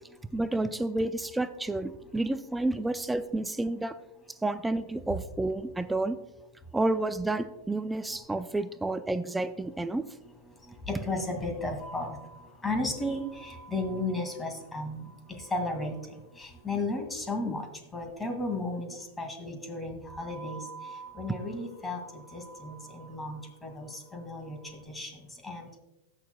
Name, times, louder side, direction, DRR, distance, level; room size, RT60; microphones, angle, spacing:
voice 1, 0.3-4.0 4.4-6.2 6.7-10.0, right 2 dB, 10° right, 11 dB, 0.4 m, -30 dB
voice 2, 10.6-12.2 12.6-17.7 17.9-25.7, left 2 dB, 15° left, 4 dB, 2.0 m, -35 dB
sound 1, 11.8-17.1 20.1-24.8, right 3 dB, 50° left, 2.2 m, -50 dB
18.5 x 6.5 x 2.3 m, 0.98 s
hypercardioid pair, 110°, 0 cm